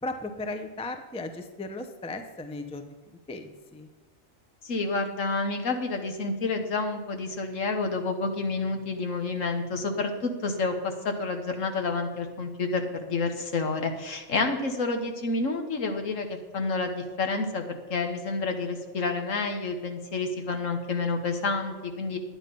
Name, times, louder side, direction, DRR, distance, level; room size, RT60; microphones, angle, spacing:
voice 1, 0.0-3.9, left 2 dB, 10° left, 6 dB, 0.4 m, -36 dB
voice 2, 4.6-22.2, left 3 dB, 70° left, 5 dB, 1.6 m, -29 dB
10.5 x 9.0 x 5.3 m, 1.3 s
omnidirectional pair, 1.4 m